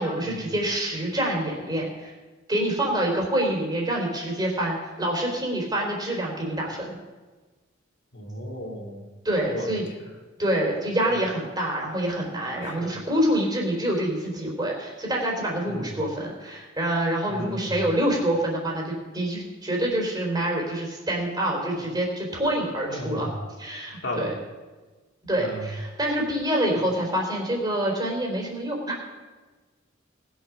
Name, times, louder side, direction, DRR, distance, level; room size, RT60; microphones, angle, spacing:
voice 1, 0.0-2.1 2.5-7.0 9.2-9.8 10.4-23.3 23.6-24.3 25.3-29.0, right 1 dB, 20° right, -1 dB, 3.5 m, -26 dB
voice 2, 8.1-9.1 9.5-9.7 10.0-10.1 11.1-11.2 12.6-12.9 15.7-15.9 17.3-17.9 21.8-21.9 22.9-23.3 24.0-24.3 25.4-25.7 26.8-26.9, equal, 60° left, 0 dB, 2.2 m, -35 dB
19.0 x 7.3 x 6.1 m, 1.3 s
head